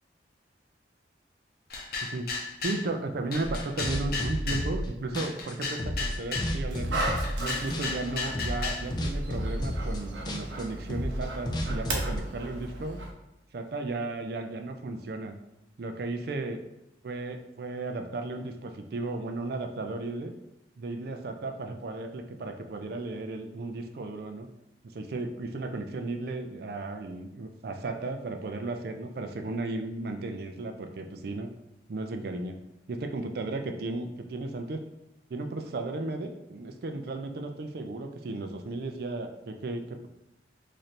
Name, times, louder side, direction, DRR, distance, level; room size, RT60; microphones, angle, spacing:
sound 1, 1.7-2.8 3.3-4.7 5.2-6.5 7.0-8.8, left 4 dB, 55° left, 0.7 m, -34 dB
voice 1, 2.6-7.0 7.4-13.0 13.5-15.3 15.8-16.6 17.0-20.3 20.8-24.5 24.8-31.5 31.9-32.6 32.9-34.8 35.3-40.1, right 2 dB, 60° right, 6 dB, 0.4 m, -35 dB
sound 2, 3.4-4.9 5.1-7.5 7.7-8.1 8.3-12.2, equal, 25° left, 0.4 m, -31 dB
Dog, 6.7-13.1, right 2 dB, 85° right, 0.7 m, -36 dB
3.1 x 2.6 x 4.1 m, 0.86 s
head